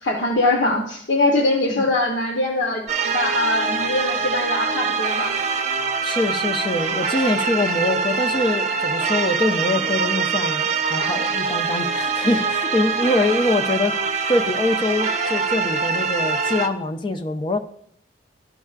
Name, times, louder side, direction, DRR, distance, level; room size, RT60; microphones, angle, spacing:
voice 1, 0.0-5.3, left 2 dB, 70° left, 0 dB, 0.9 m, -22 dB
sound 1, 2.9-16.7, right 5 dB, 40° right, 0.6 m, -24 dB
voice 2, 6.0-13.9 14.3-17.6, left 2 dB, 30° left, 6 dB, 0.4 m, -24 dB
12.5 x 5.4 x 2.4 m, 0.66 s
head